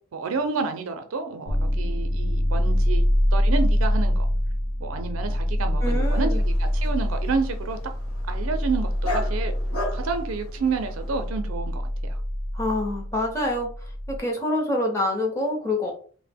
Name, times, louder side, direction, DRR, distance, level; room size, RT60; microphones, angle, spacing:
voice 1, 0.1-3.1 3.3-4.3 4.8-7.8 8.3-9.5 9.9-12.2, right 4 dB, 70° right, 0.5 m, -29 dB
sound 1, 1.5-14.2, equal, 55° left, 0.7 m, -25 dB
voice 2, 5.8-6.4 12.5-13.7 14.1-15.9, left 1 dB, 15° left, 0.6 m, -26 dB
Dog, 5.9-11.3, left 1 dB, 85° left, 1.1 m, -37 dB
2.7 x 2.0 x 3.4 m
head